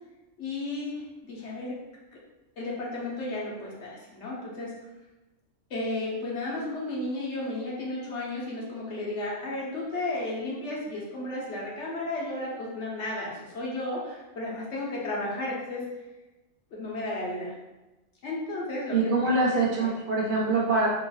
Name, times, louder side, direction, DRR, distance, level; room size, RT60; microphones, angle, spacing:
voice 1, 0.4-1.0 1.3-1.7 2.6-4.7 5.7-15.8 16.7-17.5 18.2-19.2 19.5-19.9 20.5-20.6, left 2 dB, 75° left, -4 dB, 1.1 m, -33 dB
voice 2, 18.9-20.9, right 3 dB, 55° right, -4 dB, 0.8 m, -24 dB
4.1 x 3.0 x 2.3 m, 1.0 s
omnidirectional pair, 1.2 m